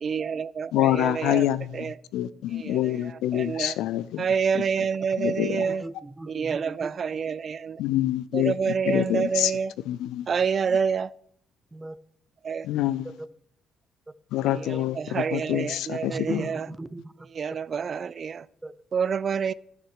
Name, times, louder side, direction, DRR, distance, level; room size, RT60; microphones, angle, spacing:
voice 1, 0.0-1.5 1.7-1.9 2.5-3.8 4.2-5.8 6.3-7.8 8.3-9.7 10.3-11.1 12.4-12.7 14.7-16.7 17.3-18.5 18.9-19.5, right 6 dB, 50° right, 0.4 m, -28 dB
voice 2, 0.7-4.3 4.5-4.9 5.2-5.7 7.8-8.5 8.8-9.5 9.9-10.3 12.6-13.1 14.3-16.4, left 13 dB, 75° left, 0.4 m, -26 dB
voice 3, 5.6-6.9 11.7-12.0 16.1-17.3 18.6-18.7, right 2 dB, 20° right, 0.7 m, -37 dB
12.5 x 6.0 x 6.3 m
hypercardioid pair, 50°, 0 cm